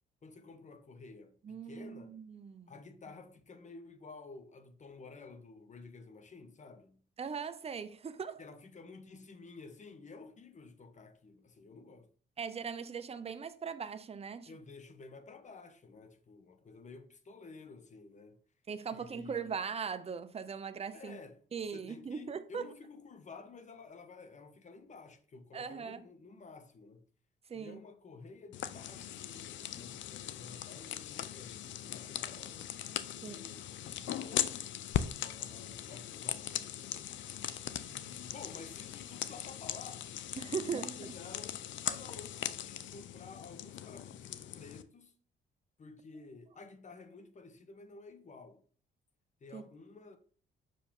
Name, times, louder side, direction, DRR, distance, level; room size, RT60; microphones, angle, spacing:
voice 1, 0.2-2.2 2.7-7.0 8.4-12.1 14.5-18.4 18.9-19.5 20.9-27.0 27.5-32.7 33.1-34.9 35.2-37.1 37.8-40.1 40.5-41.6 41.9-45.1 45.8-48.6 49.4-50.2, left 4 dB, 35° left, 1.1 m, -52 dB
voice 2, 1.4-2.7 7.2-8.4 12.4-14.5 18.7-21.2 21.5-22.6 25.5-26.0 27.5-27.8 33.2-33.4 40.4-41.1 41.9-42.0 49.5-49.6, right 6 dB, 30° right, 0.7 m, -40 dB
sound 1, 28.5-44.8, left 11 dB, 70° left, 0.6 m, -40 dB
6.5 x 5.2 x 3.7 m
cardioid pair, 90°, 20 cm